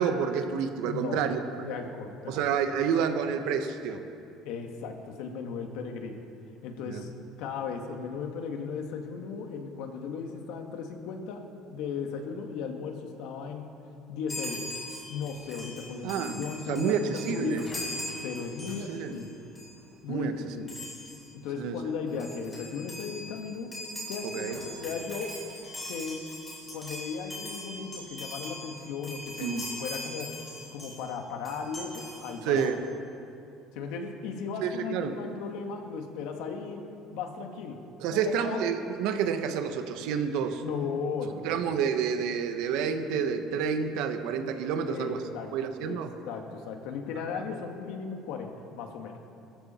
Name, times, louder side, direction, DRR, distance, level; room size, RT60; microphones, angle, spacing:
voice 1, 0.0-1.4 2.3-4.0 6.9-7.0 16.0-17.7 18.9-19.2 20.1-20.5 21.6-21.8 22.1-22.2 24.2-24.6 29.4-29.7 32.4-32.8 34.6-35.1 38.0-40.6 41.4-45.2 45.5-46.1, right 7 dB, 70° right, 7 dB, 1.3 m, -29 dB
voice 2, 0.8-1.3 1.6-2.4 4.5-6.2 6.6-7.1 7.4-11.4 11.7-13.7 14.1-14.7 15.1-17.7 18.2-19.4 20.0-20.7 21.3-23.7 24.1-25.4 25.9-26.2 26.7-30.4 30.7-32.7 33.7-36.9 37.1-37.8 38.1-38.6 40.6-41.6 44.9-45.5 45.8-49.2, left 5 dB, 70° left, 4 dB, 1.9 m, -36 dB
Chime, 14.3-19.2 19.5-19.8 20.7-21.3 21.8-21.9 22.1-31.1 31.4-32.7, left 1 dB, 15° left, 5.2 m, -41 dB
20.5 x 14.5 x 4.5 m, 2.5 s
cardioid pair, 155°, 0 cm